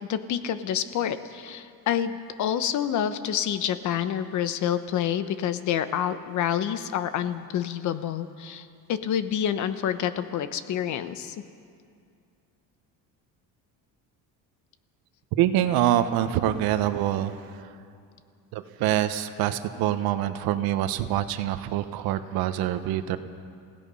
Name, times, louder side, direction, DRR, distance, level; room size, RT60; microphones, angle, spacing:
voice 1, 0.0-11.4, left 9 dB, 55° left, 11 dB, 1.1 m, -28 dB
voice 2, 15.4-17.4 18.5-23.2, right 12 dB, 80° right, 10 dB, 1.2 m, -25 dB
30.0 x 16.5 x 5.6 m, 2.4 s
cardioid pair, 155°, 36 cm